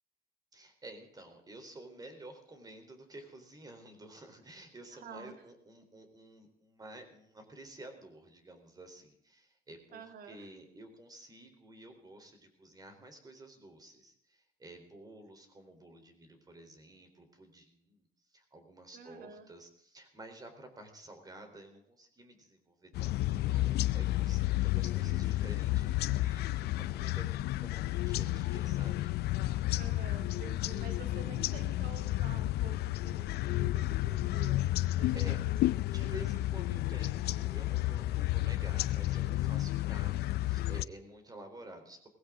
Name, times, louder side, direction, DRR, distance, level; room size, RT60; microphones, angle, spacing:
voice 1, 0.5-29.1 35.1-35.4 35.8-42.1, right 1 dB, 20° right, 6 dB, 3.9 m, -51 dB
voice 2, 5.0-5.3 9.9-10.5 18.9-19.5 29.8-36.3, right 6 dB, 60° right, 8 dB, 1.9 m, -49 dB
sound 1, 22.9-40.8, left 16 dB, 70° left, 0.5 m, -31 dB
18.0 x 16.0 x 3.8 m, 0.68 s
cardioid pair, 110°, 17 cm